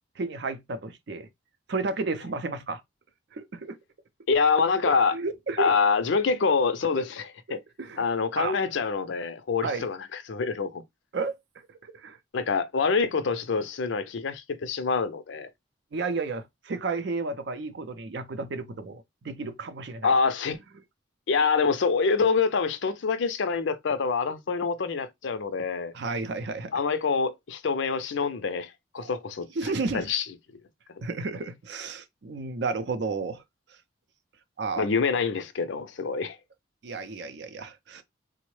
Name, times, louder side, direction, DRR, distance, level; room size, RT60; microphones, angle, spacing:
voice 1, 0.2-1.3 1.7-2.8 3.3-3.8 4.8-5.7 7.0-7.1 7.8-8.0 8.4-8.6 9.6-9.9 11.1-11.4 11.9-12.2 15.9-20.1 25.9-26.7 29.0-29.1 29.6-30.1 31.0-33.4 34.6-34.9 36.8-38.0, right 3 dB, 60° right, 0.5 m, -32 dB
voice 2, 4.3-5.1 5.6-7.2 7.5-7.6 8.0-10.8 12.3-15.5 20.0-20.6 21.3-25.9 26.7-30.2 34.8-36.4, left 5 dB, 65° left, 0.5 m, -26 dB
3.6 x 2.1 x 3.0 m
head